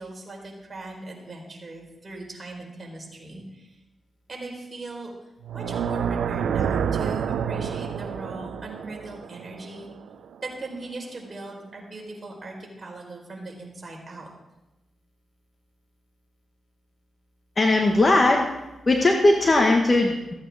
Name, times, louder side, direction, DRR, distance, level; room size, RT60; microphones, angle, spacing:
voice 1, 0.0-3.8 4.3-5.1 5.5-9.9 10.4-14.3, right 2 dB, 40° right, -1 dB, 4.2 m, -39 dB
sound 1, 5.4-10.6, right 7 dB, 85° right, 0.5 m, -28 dB
voice 2, 17.6-18.5 18.8-20.3, left 2 dB, 40° left, 1 dB, 1.6 m, -19 dB
15.5 x 8.8 x 3.6 m, 0.97 s
supercardioid pair, 50°, 0 cm